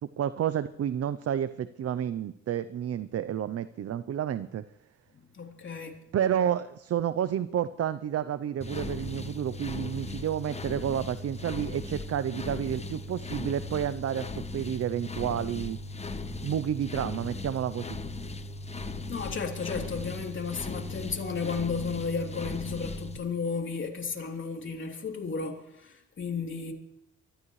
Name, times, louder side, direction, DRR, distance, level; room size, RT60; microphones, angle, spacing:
voice 1, 0.0-4.6 6.1-15.8 16.4-18.0, right 9 dB, 50° right, 0.7 m, -30 dB
voice 2, 5.3-6.0 19.1-26.7, left 5 dB, 40° left, 3.3 m, -33 dB
sound 1, 8.6-23.2, left 2 dB, 20° left, 1.1 m, -38 dB
24.5 x 13.5 x 3.2 m
cardioid pair, 90°, 30 cm